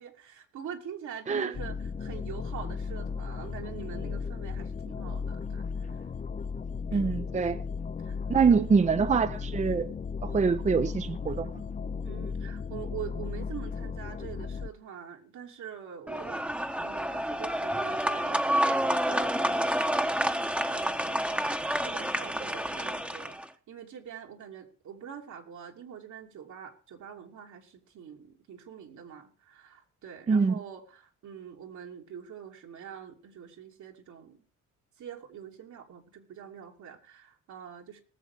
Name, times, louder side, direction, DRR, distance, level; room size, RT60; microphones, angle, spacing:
voice 1, 0.0-6.0 6.9-7.0 8.0-8.2 8.5-8.7 9.0-9.2 12.0-16.4 16.8-21.4 21.7-23.4 23.7-34.4 35.0-38.0, right 8 dB, 75° right, 2.9 m, -44 dB
sound 1, 1.5-14.7, left 5 dB, 25° left, 0.6 m, -35 dB
voice 2, 6.9-7.6 8.3-9.9 10.2-11.5 30.3-30.6, right 5 dB, 25° right, 0.6 m, -25 dB
sound 2, 16.1-23.5, equal, 5° right, 1.0 m, -29 dB
19.0 x 7.1 x 4.9 m
cardioid pair, 90°, 30 cm